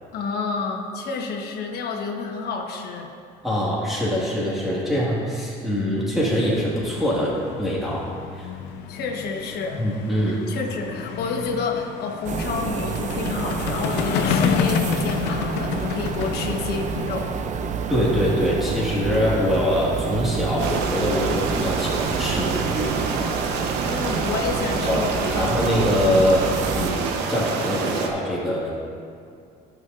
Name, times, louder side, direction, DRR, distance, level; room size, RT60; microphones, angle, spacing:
voice 1, 0.1-3.1 8.9-9.9 10.2-17.3 23.8-25.5, left 4 dB, 70° left, 2 dB, 1.2 m, -29 dB
voice 2, 3.4-8.1 8.3-8.5 9.8-10.4 17.9-22.9 24.9-25.0 25.4-26.5 26.8-28.7, equal, ahead, -7 dB, 1.8 m, -23 dB
sound 1, 6.4-20.2, left 7 dB, 90° left, 0.6 m, -30 dB
sound 2, 12.2-26.9, right 6 dB, 45° right, 0.5 m, -29 dB
sound 3, 20.6-28.1, right 4 dB, 90° right, 0.9 m, -27 dB
15.0 x 6.3 x 2.5 m, 2.3 s
cardioid pair, 110°, 17 cm